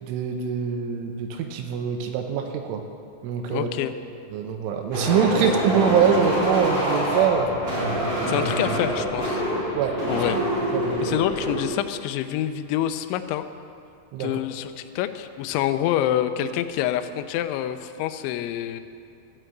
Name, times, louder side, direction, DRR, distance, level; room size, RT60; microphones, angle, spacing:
voice 1, 0.0-2.8 3.2-3.7 4.3-7.6 8.2-8.4 9.7-10.0 10.7-11.2 14.1-14.3, right 7 dB, 80° right, 4 dB, 3.1 m, -24 dB
voice 2, 3.5-3.9 5.4-5.5 8.3-9.4 10.1-10.4 11.0-13.4 14.2-18.8, left 11 dB, 90° left, 9 dB, 2.6 m, -27 dB
sound 1, 4.9-11.6, equal, 25° right, 3.6 m, -26 dB
12.5 x 7.9 x 7.8 m, 2.4 s
omnidirectional pair, 6.0 m